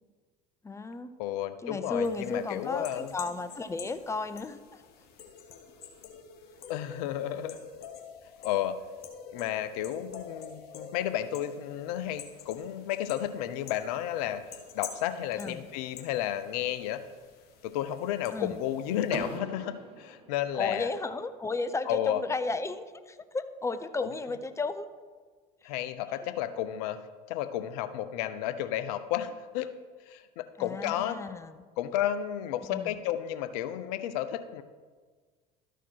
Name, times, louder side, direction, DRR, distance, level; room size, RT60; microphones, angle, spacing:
voice 1, 0.6-1.1 1.6-4.8 15.4-15.7 18.3-18.6 20.5-24.9 26.1-26.4 30.6-31.6 32.7-33.0, left 3 dB, 15° left, 11 dB, 0.5 m, -34 dB
voice 2, 1.2-3.1 6.7-7.6 8.4-8.8 9.3-14.4 14.7-17.0 17.6-20.9 21.9-22.2 25.6-27.0 27.3-29.7 30.1-31.2 31.8-34.6, left 11 dB, 75° left, 11 dB, 0.6 m, -32 dB
sound 1, 2.0-19.4, left 7 dB, 55° left, 1.3 m, -48 dB
Car / Door, 19.1-21.0, right 3 dB, 25° right, 2.0 m, -41 dB
12.5 x 4.5 x 4.5 m, 1.5 s
hypercardioid pair, 80°, 20 cm